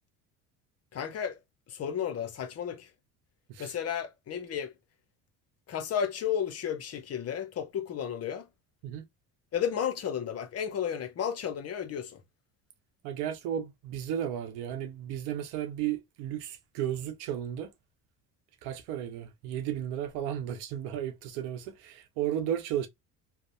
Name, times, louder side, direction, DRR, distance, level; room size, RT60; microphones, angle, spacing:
voice 1, 0.9-1.4 1.7-2.9 3.6-4.7 5.7-8.5 9.5-12.2, left 8 dB, 40° left, 0.6 m, -33 dB
voice 2, 13.0-17.7 18.6-22.9, right 10 dB, 75° right, 0.8 m, -34 dB
2.7 x 2.0 x 2.5 m
supercardioid pair, 75°, 41 cm